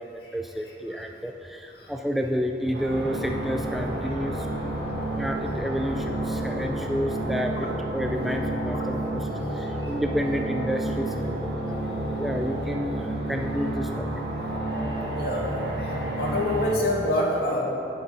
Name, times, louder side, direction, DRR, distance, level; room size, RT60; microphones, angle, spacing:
voice 1, 0.0-4.5 5.1-9.3 9.5-11.6 12.2-14.1, equal, ahead, 3 dB, 0.3 m, -30 dB
sound 1, 2.7-16.7, right 1 dB, 75° right, 1.5 m, -30 dB
voice 2, 15.8-17.6, left 1 dB, 65° left, -3 dB, 2.0 m, -26 dB
8.9 x 8.1 x 5.6 m, 2.9 s
head